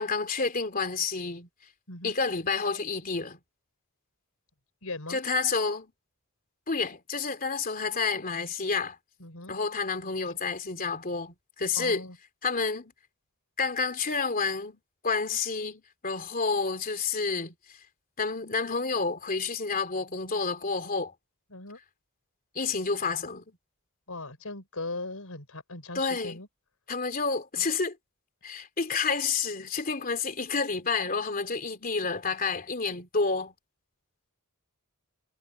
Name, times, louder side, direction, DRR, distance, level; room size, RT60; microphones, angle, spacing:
voice 1, 0.0-1.5 2.0-3.4 5.1-5.9 6.7-9.0 9.5-12.1 12.4-12.9 13.6-17.5 18.2-21.1 22.5-23.6 25.9-26.4 26.9-28.0 28.4-33.5, left 4 dB, 40° left, 3.1 m, -29 dB
voice 2, 4.8-5.2 9.2-9.5 11.8-12.2 21.5-21.8 24.1-26.5, left 3 dB, 75° left, 5.4 m, -38 dB
head